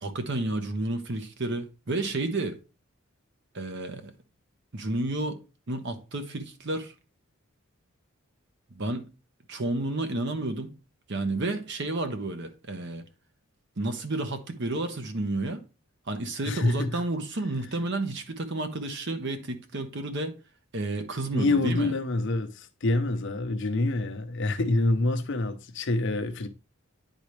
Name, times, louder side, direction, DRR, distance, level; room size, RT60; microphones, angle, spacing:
voice 1, 0.0-2.6 3.5-4.1 4.7-5.4 5.7-6.9 8.7-9.1 9.5-10.7 11.1-13.0 13.8-15.6 16.1-20.3 20.7-21.9, right 2 dB, 55° right, 1.0 m, -31 dB
voice 2, 16.4-17.0 21.3-26.5, left 2 dB, 60° left, 0.7 m, -26 dB
10.0 x 4.0 x 3.2 m
head